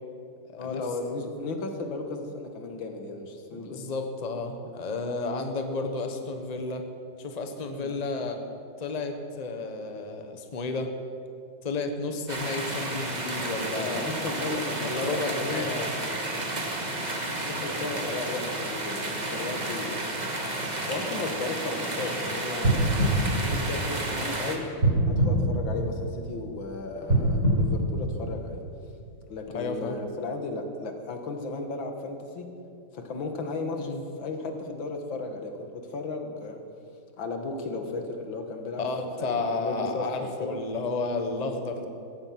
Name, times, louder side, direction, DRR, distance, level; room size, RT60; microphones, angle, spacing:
voice 1, 0.6-3.9 7.8-7.9 13.7-16.1 17.4-20.4 20.9-24.7 25.1-28.6 29.3-32.5 32.9-33.9 34.2-36.6 37.2-38.9 39.2-40.6, left 3 dB, 85° left, 5 dB, 2.3 m, -35 dB
voice 2, 3.5-6.9 7.2-8.4 8.8-11.0 11.6-14.1 14.8-16.6 29.5-30.0 33.7-34.0 38.8-41.9, left 3 dB, 25° left, 5 dB, 1.1 m, -32 dB
sound 1, 12.3-24.6, right 2 dB, 25° right, 1.5 m, -32 dB
sound 2, 22.6-24.3 24.8-26.3 27.0-28.7 29.2-29.3, right 1 dB, 45° right, 4.4 m, -24 dB
15.5 x 15.0 x 6.0 m, 2.5 s
omnidirectional pair, 2.0 m